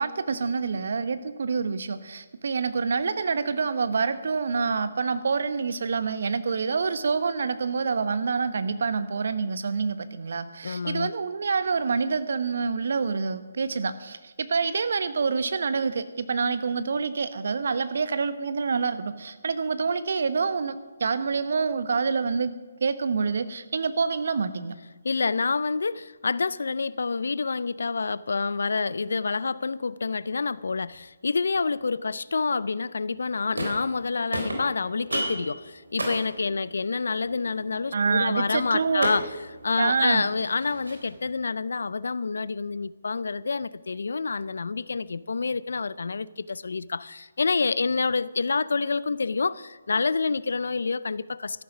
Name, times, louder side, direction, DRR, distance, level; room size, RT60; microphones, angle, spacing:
voice 1, 0.0-22.5 22.8-24.7 37.9-39.1 39.8-40.3, right 5 dB, 60° right, 1.0 m, -27 dB
voice 2, 10.6-11.1 25.0-39.3 39.6-51.6, left 4 dB, 70° left, 0.5 m, -28 dB
sound 1, 33.2-34.0 34.3-41.3, right 1 dB, 80° right, 3.7 m, -35 dB
14.0 x 11.0 x 6.1 m
figure-of-eight pair, 145°, 0 cm